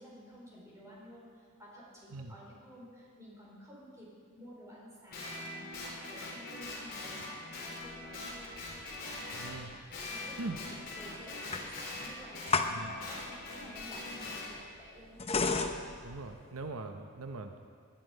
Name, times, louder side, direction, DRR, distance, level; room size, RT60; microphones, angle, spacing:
voice 1, 0.0-4.1 4.3-8.5 9.0-9.5 10.1-15.2, equal, 15° right, -5 dB, 4.4 m, -53 dB
Guitar, 5.1-9.6 9.9-14.5, left 2 dB, 45° left, 4.0 m, -42 dB
sound 1, 7.8-16.7, left 4 dB, 25° left, 0.7 m, -36 dB
voice 2, 9.3-9.7 10.4-10.6 12.7-12.9 16.0-17.6, right 3 dB, 80° right, 6 dB, 0.8 m, -41 dB
19.0 x 11.0 x 5.2 m, 2.1 s
head